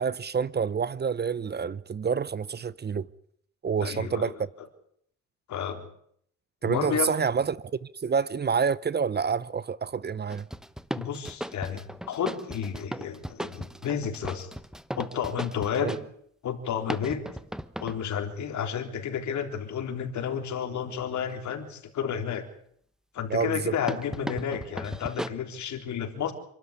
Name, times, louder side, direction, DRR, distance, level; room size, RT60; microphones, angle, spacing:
voice 1, 0.0-3.1 3.6-4.3 6.6-10.5 15.8-15.9 23.3-23.7, right 6 dB, 35° right, 0.9 m, -28 dB
voice 2, 3.8-4.2 5.5-5.9 6.6-7.2 10.9-11.8 12.1-14.5 14.9-16.0 16.4-17.2 17.8-22.5 23.1-26.3, left 8 dB, 70° left, 3.8 m, -31 dB
sound 1, 10.3-16.0 16.9-18.0 23.9-25.3, equal, ahead, 1.0 m, -36 dB
27.0 x 12.5 x 9.9 m
cardioid pair, 90°, 30 cm